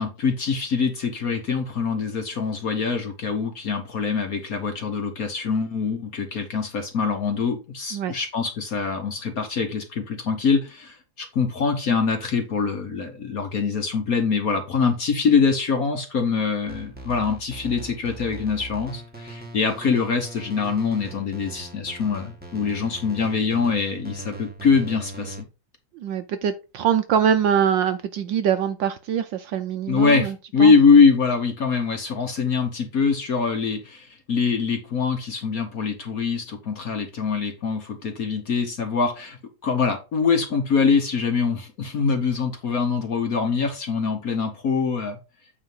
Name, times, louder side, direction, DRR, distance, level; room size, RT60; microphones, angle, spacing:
voice 1, 0.0-25.4 29.9-45.2, left 5 dB, 50° left, 1.2 m, -23 dB
sound 1, 16.7-25.4, right 1 dB, 5° right, 1.1 m, -39 dB
voice 2, 25.9-30.7, right 8 dB, 70° right, 1.1 m, -23 dB
8.8 x 3.2 x 5.5 m
omnidirectional pair, 2.4 m